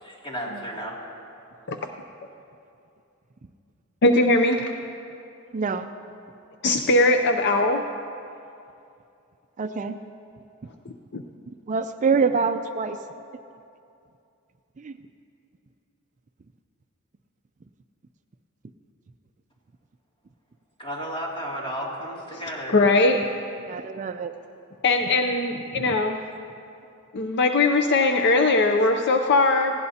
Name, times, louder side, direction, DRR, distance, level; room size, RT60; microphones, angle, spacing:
voice 1, 0.0-1.0 20.8-22.8, equal, 25° left, -4 dB, 2.5 m, -33 dB
voice 2, 4.0-4.7 6.6-7.8 11.1-11.2 22.7-23.2 24.8-26.2 27.1-29.7, left 2 dB, 55° left, 5 dB, 0.6 m, -20 dB
voice 3, 5.5-5.9 9.6-10.0 11.7-13.0 14.8-15.0 23.6-24.3 25.7-26.0, right 5 dB, 35° right, 9 dB, 0.4 m, -26 dB
19.0 x 16.5 x 2.8 m, 2.6 s
head